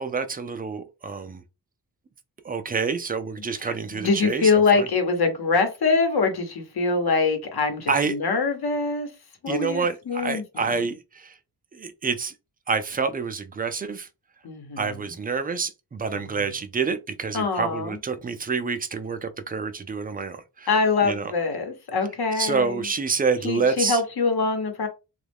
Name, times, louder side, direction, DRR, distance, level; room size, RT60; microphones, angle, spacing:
voice 1, 0.0-1.4 2.4-4.9 7.9-8.2 9.5-11.4 11.7-12.3 12.7-14.1 14.8-20.7 21.0-21.3 22.4-24.0, right 5 dB, 25° right, 0.3 m, -27 dB
voice 2, 3.6-9.1 9.4-10.7 14.4-15.1 16.1-16.5 17.3-18.0 20.7-22.9 23.4-24.9, left 4 dB, 65° left, 1.0 m, -24 dB
3.0 x 2.3 x 3.4 m
wide cardioid pair, 125°, 40 cm